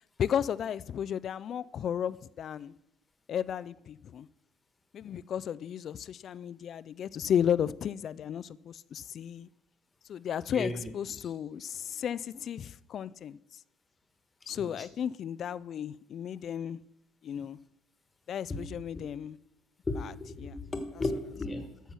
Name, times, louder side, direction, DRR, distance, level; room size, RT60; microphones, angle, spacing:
voice 1, 0.0-2.7 3.3-4.3 4.9-9.5 10.1-13.4 14.5-16.8 17.2-17.6 18.3-19.4 20.0-20.1 20.4-20.6, left 9 dB, 40° left, 0.3 m, -34 dB
voice 2, 10.5-10.9 14.5-14.9 18.5-18.6 19.9-21.9, left 2 dB, 15° left, 1.4 m, -35 dB
13.5 x 5.7 x 6.2 m
cardioid pair, 145°, 0 cm